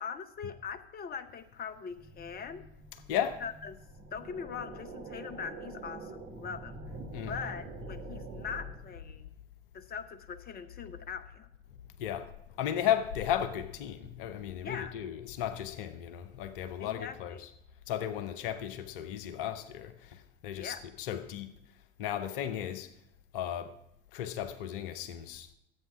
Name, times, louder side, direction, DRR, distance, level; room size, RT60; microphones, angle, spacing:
voice 1, 0.0-2.6 3.4-3.8 4.1-6.8 7.3-9.3 9.7-11.5 14.6-15.0 16.8-17.5 20.6-20.8, left 6 dB, 30° left, 0.9 m, -41 dB
sound 1, 1.9-8.9, right 2 dB, 40° right, 6.2 m, -45 dB
voice 2, 2.9-3.5 7.1-7.4 12.0-17.5 17.9-21.5 22.0-22.9 23.3-23.8 24.1-25.5, left 10 dB, 65° left, 0.9 m, -35 dB
12.5 x 8.3 x 5.7 m
figure-of-eight pair, 65°, 30 cm